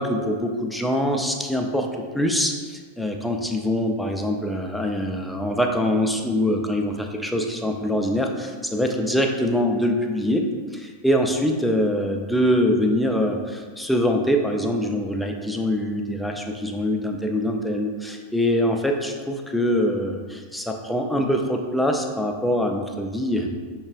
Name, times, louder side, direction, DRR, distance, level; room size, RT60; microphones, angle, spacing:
voice 1, 0.0-23.5, equal, ahead, 2 dB, 0.3 m, -24 dB
6.0 x 2.2 x 2.4 m, 1.5 s
figure-of-eight pair, 90°, 0 cm